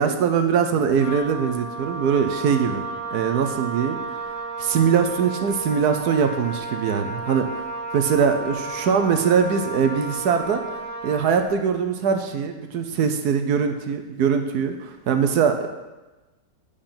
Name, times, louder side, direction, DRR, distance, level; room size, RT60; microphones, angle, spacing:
voice 1, 0.0-2.8 3.1-4.0 4.6-7.5 7.9-10.6 11.0-15.7, right 6 dB, 70° right, 7 dB, 1.2 m, -22 dB
Wind instrument woodwind instrument, 0.9-11.5, right 3 dB, 10° right, 2.3 m, -33 dB
8.8 x 5.1 x 5.7 m, 1.1 s
omnidirectional pair, 1.8 m